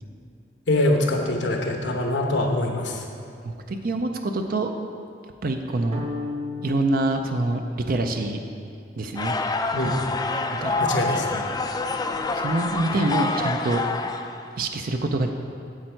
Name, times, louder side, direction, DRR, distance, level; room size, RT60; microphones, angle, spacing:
voice 1, 0.7-3.0 9.7-10.0 10.8-11.4, left 1 dB, 80° left, 2 dB, 1.1 m, -24 dB
voice 2, 3.4-4.7 5.4-6.0 6.6-8.4 9.0-9.3 10.5-10.8 12.3-13.8 14.6-15.3, right 2 dB, 55° right, 5 dB, 0.5 m, -25 dB
sound 1, 5.9-8.2, left 3 dB, 35° right, 0.9 m, -35 dB
sound 2, 9.2-14.5, left 3 dB, 20° left, 0.4 m, -27 dB
8.6 x 7.7 x 4.5 m, 2.5 s
head